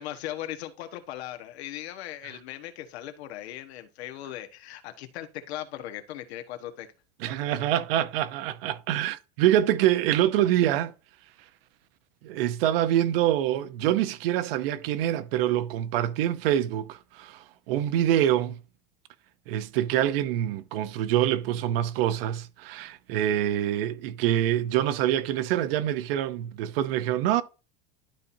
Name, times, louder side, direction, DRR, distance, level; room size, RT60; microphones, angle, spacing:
voice 1, 0.0-6.9, left 12 dB, 80° left, 1.4 m, -38 dB
voice 2, 7.2-10.9 12.2-18.6 19.5-27.4, right 12 dB, 60° right, 0.8 m, -25 dB
12.0 x 4.3 x 2.7 m
supercardioid pair, 170°, 32 cm